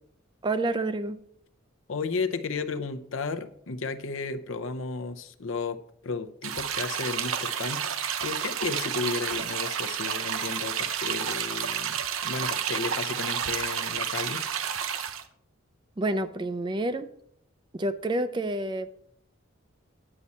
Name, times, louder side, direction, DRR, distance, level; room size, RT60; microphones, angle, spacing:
voice 1, 0.4-1.2 16.0-17.1 17.7-19.0, right 2 dB, 20° right, 12 dB, 0.4 m, -28 dB
voice 2, 1.9-7.8 8.2-14.4, left 4 dB, 70° left, 9 dB, 0.7 m, -33 dB
sound 1, 6.4-15.2, right 8 dB, 75° right, 0.7 m, -30 dB
9.8 x 8.4 x 4.1 m, 0.70 s
head